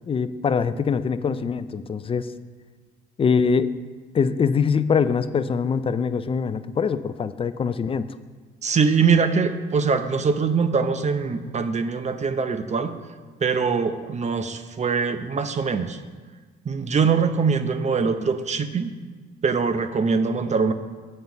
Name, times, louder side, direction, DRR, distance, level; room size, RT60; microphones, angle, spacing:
voice 1, 0.1-2.3 3.2-3.7 4.1-8.1, left 6 dB, 30° left, 12 dB, 0.4 m, -23 dB
voice 2, 8.6-12.9 13.4-16.0 16.7-18.9 19.4-20.7, right 5 dB, 35° right, 10 dB, 0.6 m, -23 dB
7.6 x 5.4 x 7.1 m, 1.4 s
cardioid pair, 90°, 20 cm